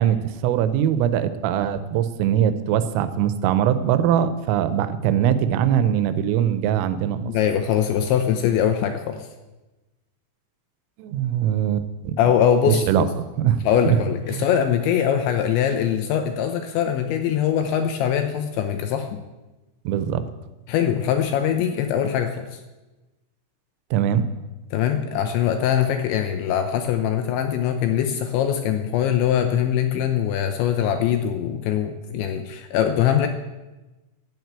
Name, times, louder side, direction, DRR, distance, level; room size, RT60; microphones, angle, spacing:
voice 1, 0.0-7.3 11.0-12.2 12.7-13.1 13.4-14.0 14.3-14.4 19.9-20.2 23.9-24.3, right 10 dB, 85° right, 11 dB, 3.4 m, -22 dB
voice 2, 7.3-9.3 12.2-13.1 13.6-19.2 20.7-22.6 24.7-33.3, left 9 dB, 75° left, 6 dB, 2.9 m, -22 dB
12.0 x 9.1 x 8.1 m, 1.1 s
omnidirectional pair, 5.8 m